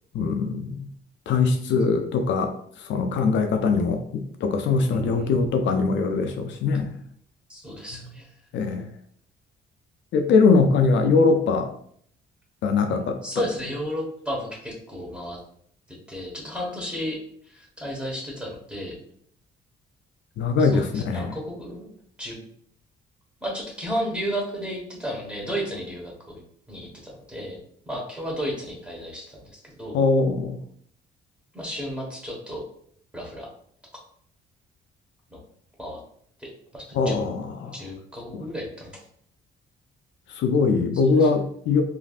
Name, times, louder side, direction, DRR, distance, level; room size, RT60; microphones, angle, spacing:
voice 1, 0.1-0.9 1.3-2.5 2.9-6.9 8.5-8.8 10.1-11.7 12.6-13.2 20.4-21.4 29.9-30.6 36.9-37.7 38.3-38.4 40.4-41.8, left 4 dB, 70° left, 6 dB, 0.4 m, -22 dB
voice 2, 4.9-5.5 7.5-8.3 13.2-15.4 16.1-17.2 17.5-19.0 20.6-21.9 22.2-22.4 23.4-26.4 26.7-27.6 27.9-30.0 31.5-32.6 33.1-33.5 35.3-35.4 35.8-36.0 36.4-37.1 37.7-38.9 41.2-41.3, equal, 5° right, -2 dB, 1.1 m, -33 dB
3.2 x 2.5 x 2.4 m, 0.63 s
cardioid pair, 90°, 20 cm